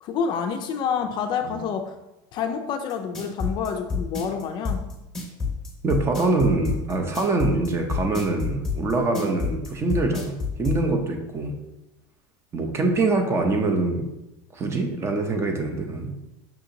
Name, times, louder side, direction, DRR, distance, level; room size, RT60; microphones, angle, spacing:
voice 1, 0.0-1.9 2.3-4.8, left 6 dB, 40° left, 5 dB, 0.3 m, -28 dB
sound 1, 2.9-10.8, left 5 dB, 5° left, 0.9 m, -28 dB
voice 2, 5.8-11.6 12.5-14.1 14.5-16.2, right 3 dB, 20° right, 4 dB, 0.5 m, -24 dB
5.7 x 2.8 x 2.6 m, 0.98 s
cardioid pair, 145°, 12 cm